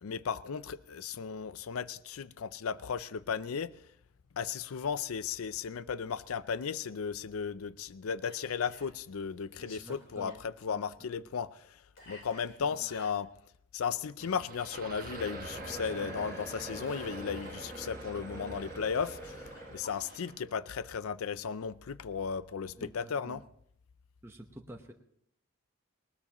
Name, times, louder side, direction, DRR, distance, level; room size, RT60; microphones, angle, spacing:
voice 1, 0.0-3.7 4.3-13.3 13.7-23.4, left 6 dB, 85° left, 0.5 m, -35 dB
Whispering, 8.2-8.9 9.5-10.4 12.0-13.2 16.3-18.1 19.0-20.2, left 2 dB, 60° left, 4.0 m, -54 dB
voice 2, 9.6-10.4 12.6-12.7 15.7-16.1 16.8-16.9 22.7-23.4 24.2-24.9, right 1 dB, 10° right, 1.0 m, -49 dB
sound 1, 14.2-20.5, right 3 dB, 40° right, 1.2 m, -47 dB
sound 2, 14.9-19.9, equal, 15° left, 1.0 m, -45 dB
20.0 x 19.5 x 3.0 m
head